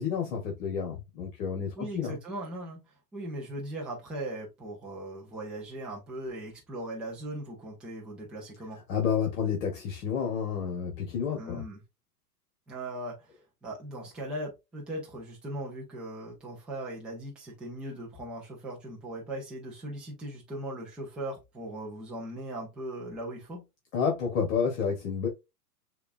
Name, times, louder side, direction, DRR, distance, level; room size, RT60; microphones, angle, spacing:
voice 1, 0.0-2.2 8.9-11.6 23.9-25.3, left 7 dB, 50° left, 1.3 m, -30 dB
voice 2, 1.8-2.8 3.1-8.8 11.3-11.8 12.7-13.1 13.6-23.6, right 1 dB, ahead, 0.3 m, -39 dB
6.6 x 2.5 x 2.5 m
hypercardioid pair, 125°, 48 cm